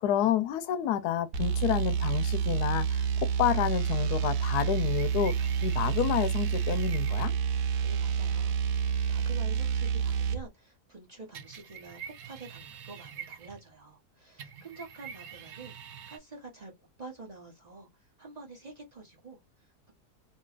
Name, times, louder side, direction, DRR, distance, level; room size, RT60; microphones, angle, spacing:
voice 1, 0.0-3.0 3.4-5.4 5.6-7.3, left 10 dB, 85° left, 1.2 m, -29 dB
sound 1, 1.3-10.4, right 7 dB, 90° right, 1.2 m, -28 dB
sound 2, 4.6-7.4 11.3-13.8 14.4-16.2, right 8 dB, 65° right, 0.7 m, -46 dB
voice 2, 7.5-15.8 16.1-19.9, right 3 dB, 30° right, 1.0 m, -48 dB
3.0 x 2.8 x 2.4 m
omnidirectional pair, 1.7 m